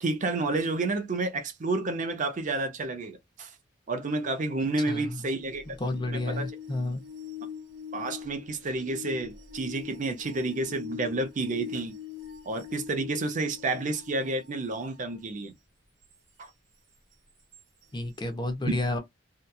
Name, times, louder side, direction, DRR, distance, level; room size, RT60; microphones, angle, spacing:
voice 1, 0.0-3.5 3.9-5.6 6.4-6.5 7.9-12.0 12.5-15.5 16.4-16.5, right 2 dB, 40° right, 0.5 m, -30 dB
voice 2, 4.9-5.3 5.7-7.0 17.9-19.0, left 2 dB, 20° left, 0.6 m, -31 dB
sound 1, 5.5-15.2 17.5-17.6, left 8 dB, 70° right, 1.3 m, -43 dB
2.7 x 2.2 x 2.2 m
head